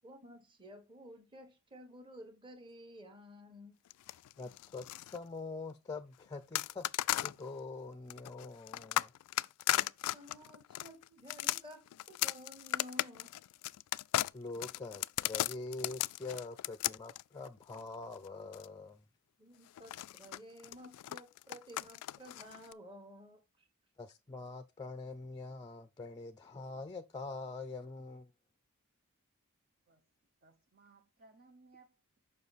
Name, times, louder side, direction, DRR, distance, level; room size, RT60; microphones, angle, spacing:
voice 1, 0.0-3.8 9.3-13.3 19.4-23.6, equal, 20° right, 1.3 m, -53 dB
sound 1, 3.9-5.2 6.5-7.4 8.1-18.7 19.8-22.7, left 14 dB, 85° left, 0.3 m, -36 dB
voice 2, 4.4-4.9 5.1-6.9 7.2-9.1 14.3-19.0 24.0-28.3, left 3 dB, 20° left, 0.5 m, -44 dB
voice 3, 30.4-32.2, right 3 dB, 45° right, 0.7 m, -63 dB
6.9 x 5.4 x 4.1 m
head